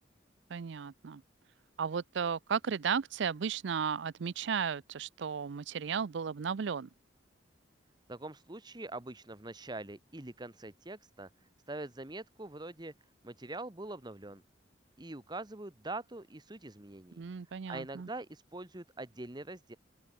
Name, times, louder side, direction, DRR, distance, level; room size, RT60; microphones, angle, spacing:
voice 1, 0.5-1.2 1.8-6.9 17.2-18.1, right 6 dB, 70° right, 0.5 m, -34 dB
voice 2, 8.1-11.3 11.7-12.9 13.2-14.4 15.0-17.2 17.5-19.8, right 2 dB, 25° right, 1.2 m, -43 dB
open air
head